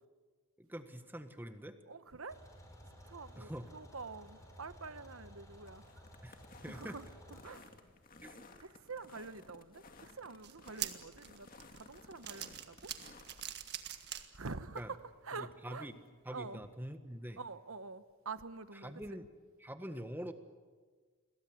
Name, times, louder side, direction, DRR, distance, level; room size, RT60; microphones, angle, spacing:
voice 1, 0.6-1.8 3.3-3.7 6.2-6.4 6.6-7.0 8.2-8.4 14.7-14.9 15.3-15.9 16.2-17.4 18.7-19.3 19.6-20.3, equal, 10° right, 8 dB, 1.5 m, -45 dB
voice 2, 1.9-2.4 3.1-5.8 6.7-7.1 7.4-7.6 8.9-11.5 11.7-12.7 14.3-14.8 15.3-15.9 16.3-16.6 17.4-18.9, right 4 dB, 75° right, 12 dB, 1.2 m, -46 dB
sound 1, 2.1-13.5, left 3 dB, 40° left, 2.1 m, -58 dB
sound 2, 2.3-7.5, equal, 15° left, 5.0 m, -55 dB
sound 3, 10.4-14.8 15.3-15.4 16.4-16.5, right 11 dB, 50° right, 1.7 m, -44 dB
29.5 x 22.0 x 7.9 m, 1.5 s
head